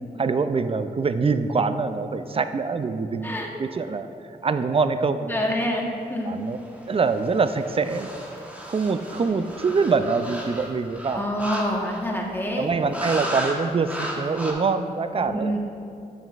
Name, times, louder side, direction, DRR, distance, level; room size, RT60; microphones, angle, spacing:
voice 1, 0.2-4.1 4.4-5.5 6.3-6.6 6.9-8.1 8.7-11.3 12.6-15.6, right 4 dB, 35° right, 11 dB, 0.4 m, -24 dB
voice 2, 5.3-5.8 6.1-6.4 11.1-12.7 15.1-15.6, equal, 10° left, -1 dB, 1.2 m, -27 dB
sound 1, 6.6-12.2 12.9-13.6 13.8-14.5, right 1 dB, 10° right, 1.1 m, -35 dB
7.4 x 7.2 x 2.4 m, 2.6 s
cardioid pair, 50°, 17 cm